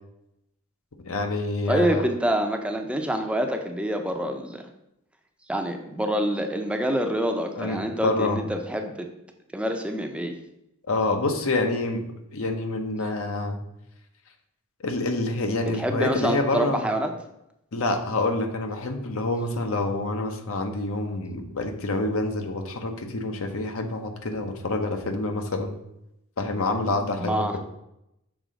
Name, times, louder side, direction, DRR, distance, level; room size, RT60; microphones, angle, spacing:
voice 1, 1.0-2.0 7.6-8.4 10.9-12.1 12.3-13.6 14.8-16.9 17.7-25.7 26.4-27.6, left 2 dB, 65° left, 5 dB, 0.8 m, -27 dB
voice 2, 1.7-4.6 5.5-9.1 9.5-10.4 15.7-17.1 27.2-27.6, right 1 dB, 5° right, 4 dB, 0.5 m, -26 dB
6.2 x 3.7 x 5.1 m, 0.83 s
head